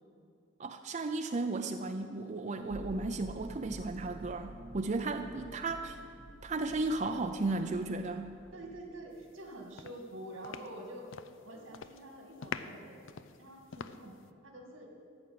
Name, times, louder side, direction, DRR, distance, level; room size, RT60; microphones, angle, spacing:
voice 1, 0.6-6.0 6.4-8.3, right 3 dB, 35° right, 6 dB, 0.5 m, -34 dB
sound 1, 2.5-8.0 8.2-9.0, equal, 50° left, 3.2 m, -49 dB
voice 2, 5.4-6.1 8.5-11.1 11.4-13.0 13.4-14.1 14.4-14.9, right 1 dB, 85° right, 1 dB, 2.2 m, -47 dB
sound 2, 9.3-9.5 9.8-11.4 11.7-12.1 12.4-14.3, left 6 dB, 75° left, 0.5 m, -44 dB
14.0 x 6.2 x 8.7 m, 2.3 s
head